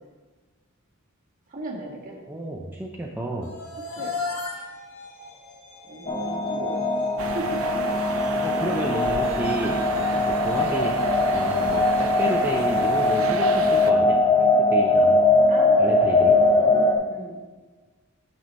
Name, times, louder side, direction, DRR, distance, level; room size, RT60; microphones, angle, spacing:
voice 1, 1.5-2.2 3.9-4.1 5.8-6.8 7.3-7.6 9.9-10.3 15.5-16.2 16.7-17.4, right 2 dB, 40° right, -3 dB, 1.8 m, -37 dB
voice 2, 2.3-3.5 8.4-9.9 10.3-11.0 11.3-15.2 15.8-16.4, right 1 dB, 10° right, -2 dB, 0.5 m, -31 dB
sound 1, 3.4-13.6, left 2 dB, 80° left, 1.4 m, -36 dB
sound 2, 6.1-17.0, left 2 dB, 25° left, 0.7 m, -21 dB
sound 3, 7.2-13.9, right 5 dB, 70° right, 0.6 m, -33 dB
9.0 x 6.1 x 4.2 m, 1.3 s
head